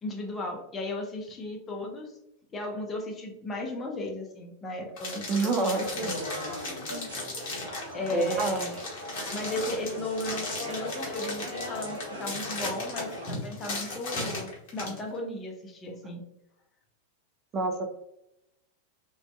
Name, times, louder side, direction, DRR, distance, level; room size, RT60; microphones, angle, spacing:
voice 1, 0.0-2.1 2.5-6.2 7.9-8.8 9.3-16.2, left 2 dB, 20° left, 1 dB, 0.6 m, -35 dB
sound 1, 5.0-15.0, left 2 dB, 45° left, 0.9 m, -37 dB
voice 2, 5.3-6.2 6.9-7.1 8.1-8.7 17.5-17.9, right 3 dB, 30° right, 5 dB, 0.4 m, -28 dB
sound 2, 5.8-13.3, left 1 dB, 75° right, 0.8 m, -38 dB
2.5 x 2.2 x 2.3 m, 0.82 s
figure-of-eight pair, 90°, 0 cm